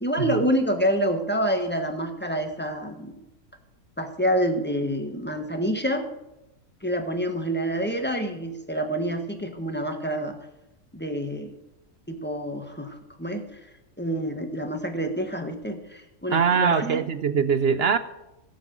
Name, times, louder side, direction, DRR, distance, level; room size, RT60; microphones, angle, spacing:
voice 1, 0.0-3.1 4.0-6.1 6.8-10.4 10.9-11.5 12.1-13.6 14.0-17.0, equal, 5° left, 5 dB, 1.3 m, -27 dB
voice 2, 16.3-18.0, right 6 dB, 65° right, 13 dB, 0.6 m, -22 dB
16.5 x 7.3 x 7.0 m, 0.91 s
omnidirectional pair, 1.6 m